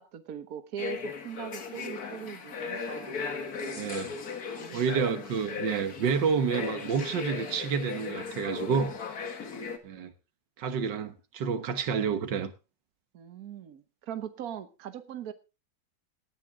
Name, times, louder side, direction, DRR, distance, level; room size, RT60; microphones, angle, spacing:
voice 1, 0.0-3.2 3.6-3.9 4.5-4.8 9.4-9.7 13.1-15.3, right 9 dB, 60° right, 1.5 m, -41 dB
sound 1, 0.8-9.8, left 5 dB, 60° left, 1.9 m, -37 dB
voice 2, 3.8-4.1 4.7-8.9 9.8-10.1 10.6-12.5, right 6 dB, 85° right, 1.8 m, -29 dB
17.5 x 10.5 x 3.6 m
omnidirectional pair, 1.9 m